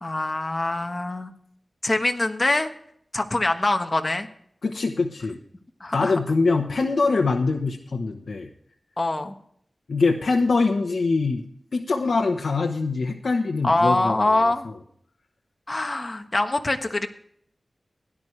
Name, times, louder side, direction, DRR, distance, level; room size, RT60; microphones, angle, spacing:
voice 1, 0.0-1.3 1.8-2.7 3.1-4.3 5.8-6.2 9.0-9.3 13.6-14.7 15.7-17.1, left 2 dB, 35° left, 6 dB, 1.3 m, -24 dB
voice 2, 4.6-5.4 5.9-8.5 9.9-11.4 11.7-14.5, left 3 dB, 75° left, 3 dB, 1.0 m, -23 dB
17.0 x 11.0 x 3.3 m, 0.67 s
wide cardioid pair, 80°, 0 cm